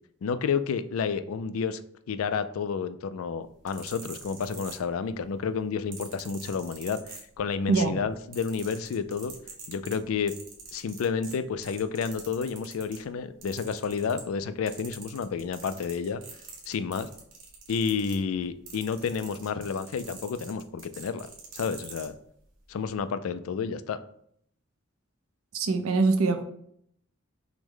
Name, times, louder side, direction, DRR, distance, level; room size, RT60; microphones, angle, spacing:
voice 1, 0.2-1.8 2.1-9.3 9.7-10.3 10.7-16.2 16.7-17.1 17.7-21.3 21.5-22.1 22.7-24.0, left 6 dB, 85° left, 12 dB, 0.3 m, -30 dB
sound 1, 3.5-5.2 5.9-7.7 8.0-13.0 13.4-14.4 14.7-22.1 22.8-23.0, right 5 dB, 70° right, 1.2 m, -45 dB
voice 2, 25.5-26.4, right 3 dB, 90° right, 7 dB, 0.6 m, -23 dB
5.9 x 2.1 x 3.7 m, 0.69 s
head